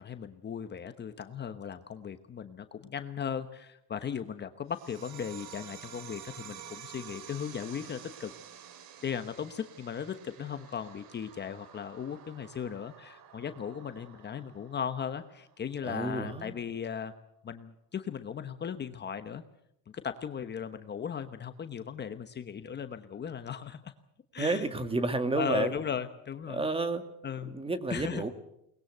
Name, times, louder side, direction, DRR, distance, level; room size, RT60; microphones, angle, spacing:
voice 1, 0.0-8.3 9.0-17.1 17.4-19.4 20.0-23.9 24.3-24.7 25.3-26.6 27.2-27.5 27.9-28.3, left 7 dB, 30° left, 9 dB, 1.1 m, -37 dB
sound 1, 4.7-15.7, right 10 dB, 75° right, 3.2 m, -50 dB
voice 2, 15.8-16.5 24.4-25.7 26.5-27.0 27.4-28.3, right 3 dB, 15° right, 9 dB, 2.0 m, -31 dB
22.5 x 20.5 x 8.0 m, 0.79 s
cardioid pair, 135°, 35 cm